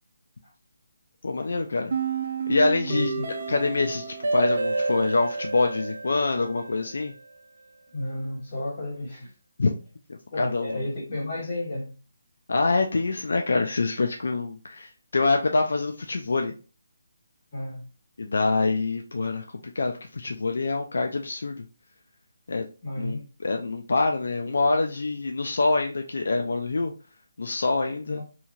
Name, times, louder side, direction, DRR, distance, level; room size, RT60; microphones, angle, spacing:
voice 1, 1.2-1.9 2.5-3.1 3.5-7.1 9.6-9.7 10.4-10.8 12.5-16.5 18.2-19.4 19.8-21.6 22.5-22.6 23.0-26.9 27.4-28.2, left 3 dB, 70° left, 0.4 m, -25 dB
sound 1, 1.9-6.9, right 4 dB, 50° right, 0.5 m, -30 dB
voice 2, 2.9-3.3 7.9-9.3 10.3-11.9 17.5-17.9 22.8-23.2 28.1-28.2, left 1 dB, 25° left, 1.6 m, -32 dB
2.8 x 2.7 x 2.4 m
hypercardioid pair, 170°, 0 cm